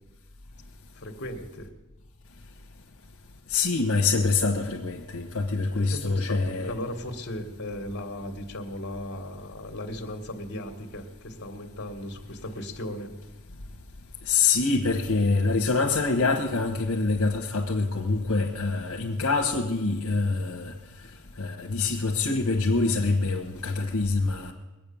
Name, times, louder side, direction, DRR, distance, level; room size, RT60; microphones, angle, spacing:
voice 1, 0.9-1.7 5.7-13.1, left 1 dB, 55° left, 1.6 m, -37 dB
voice 2, 3.5-6.7 14.3-20.7 21.4-24.5, left 3 dB, 75° left, 1.1 m, -25 dB
21.0 x 8.7 x 7.0 m
head